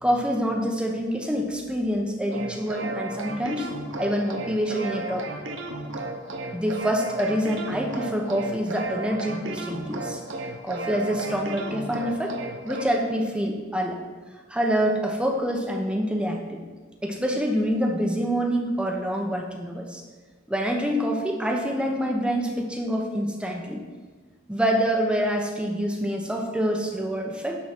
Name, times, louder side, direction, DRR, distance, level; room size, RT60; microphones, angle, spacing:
voice 1, 0.0-3.7 4.0-5.3 6.5-10.2 10.6-12.3 12.6-14.0 14.5-16.6 17.0-20.0 20.5-23.8 24.5-27.6, equal, 5° right, 1 dB, 1.0 m, -26 dB
sound 1, 2.3-12.8, right 2 dB, 75° right, 1.0 m, -34 dB
11.5 x 4.0 x 6.0 m, 1.4 s
head